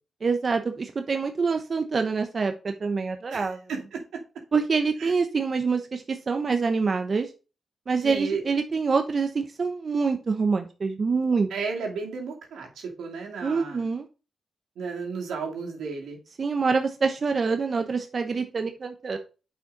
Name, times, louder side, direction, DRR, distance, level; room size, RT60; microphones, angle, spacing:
voice 1, 0.2-3.6 4.5-7.3 7.9-11.5 13.4-14.1 16.4-19.2, right 4 dB, 50° right, 6 dB, 1.0 m, -26 dB
voice 2, 3.3-4.0 5.0-5.1 8.0-8.4 11.5-13.8 14.8-16.2, right 5 dB, 90° right, 0 dB, 2.6 m, -33 dB
8.8 x 5.3 x 4.2 m, 0.33 s
cardioid pair, 70°, 0 cm